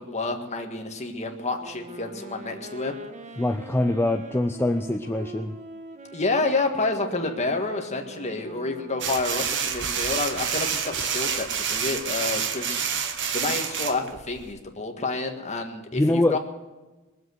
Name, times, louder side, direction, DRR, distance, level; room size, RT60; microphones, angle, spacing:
voice 1, 0.0-3.0 6.1-12.9 13.3-16.4, left 3 dB, 30° left, 4 dB, 1.7 m, -29 dB
Wind instrument woodwind instrument, 1.6-9.4, right 1 dB, 35° right, 1.2 m, -42 dB
voice 2, 3.4-5.5 15.9-16.4, left 1 dB, 10° left, 6 dB, 0.4 m, -24 dB
sound 1, 9.0-14.5, right 7 dB, 55° right, 1.3 m, -28 dB
21.5 x 7.8 x 7.9 m, 1.2 s
head